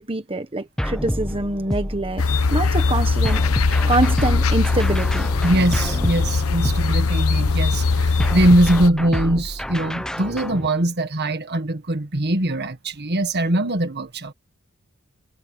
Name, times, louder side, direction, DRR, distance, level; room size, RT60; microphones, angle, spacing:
voice 1, 0.0-2.2 2.5-5.3, right 2 dB, 25° right, 1.4 m, -25 dB
sound 1, 0.8-2.5 3.2-7.4 8.2-10.7, equal, 5° left, 0.7 m, -28 dB
sound 2, 2.2-8.9, left 4 dB, 80° left, 0.9 m, -20 dB
voice 2, 5.4-14.3, right 1 dB, 50° right, 1.7 m, -21 dB
head